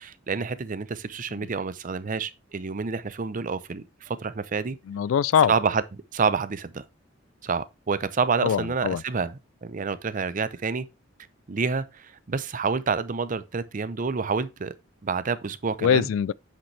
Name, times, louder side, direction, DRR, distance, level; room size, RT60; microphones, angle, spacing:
voice 1, 0.0-4.8 5.5-5.8 6.1-6.8 7.4-10.9 11.5-14.7 15.0-16.1, right 5 dB, 40° right, 0.6 m, -28 dB
voice 2, 4.9-5.5 8.4-9.0 15.8-16.3, left 8 dB, 85° left, 0.3 m, -23 dB
8.7 x 5.3 x 3.2 m
head